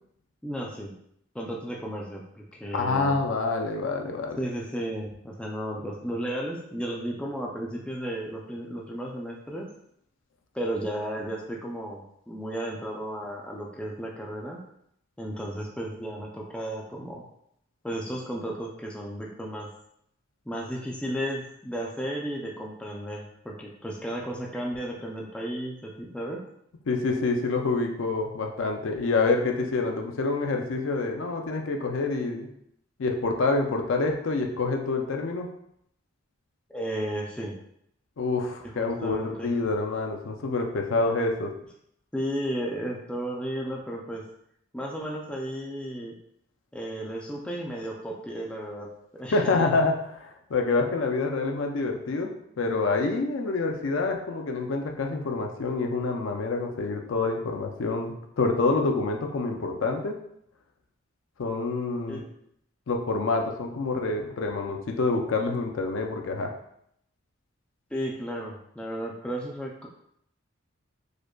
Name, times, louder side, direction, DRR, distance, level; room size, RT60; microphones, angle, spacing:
voice 1, 0.4-0.9 1.3-3.2 4.4-9.7 10.5-14.6 15.2-17.2 17.8-19.7 20.5-26.4 36.7-37.5 38.6-39.5 42.1-44.2 44.7-46.2 46.7-49.5 62.1-62.2 67.9-69.9, equal, 5° left, -2 dB, 0.3 m, -34 dB
voice 2, 2.7-4.4 26.9-32.5 33.0-35.5 38.2-41.5 49.3-60.1 61.4-62.2 62.9-66.5, left 3 dB, 70° left, 3 dB, 0.4 m, -27 dB
4.9 x 2.2 x 2.2 m, 0.73 s
head